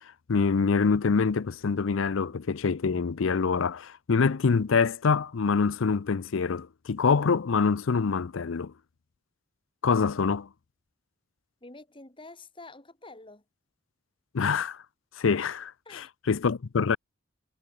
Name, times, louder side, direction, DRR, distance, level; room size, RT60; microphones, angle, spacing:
voice 1, 0.3-8.7 9.8-10.5 14.3-14.8 15.2-17.0, left 5 dB, 85° left, 0.5 m, -25 dB
voice 2, 11.6-13.4 15.8-16.1, left 2 dB, 25° left, 2.8 m, -48 dB
head